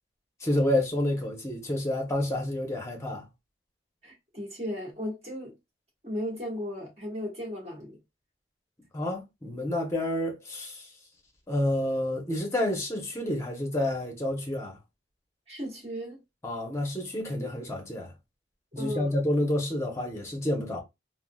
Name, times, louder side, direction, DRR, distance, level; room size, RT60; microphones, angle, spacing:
voice 1, 0.4-3.3 8.9-10.9 11.5-14.8 16.4-18.1 18.7-20.8, left 1 dB, 15° left, 0.7 m, -29 dB
voice 2, 4.0-5.5 6.0-8.0 15.5-16.2 18.7-19.1, equal, 35° right, 1.4 m, -36 dB
3.6 x 2.1 x 2.2 m
head